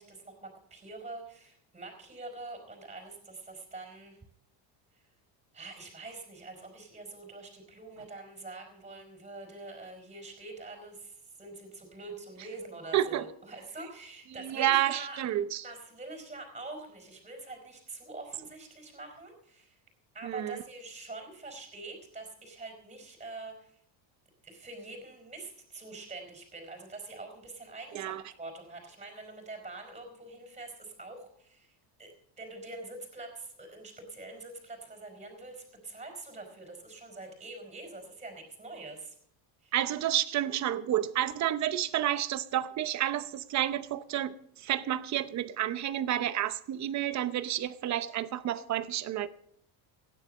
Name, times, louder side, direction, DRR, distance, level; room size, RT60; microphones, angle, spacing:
voice 1, 0.0-4.2 4.9-5.0 5.5-15.2 15.6-19.8 20.1-23.7 24.4-31.7 32.0-39.1 39.6-39.7, right 2 dB, 15° right, 4.3 m, -45 dB
voice 2, 12.9-13.3 14.4-15.6 20.2-20.6 27.9-28.2 39.7-49.3, right 12 dB, 35° right, 0.8 m, -30 dB
16.0 x 10.0 x 6.5 m
cardioid pair, 160°, 49 cm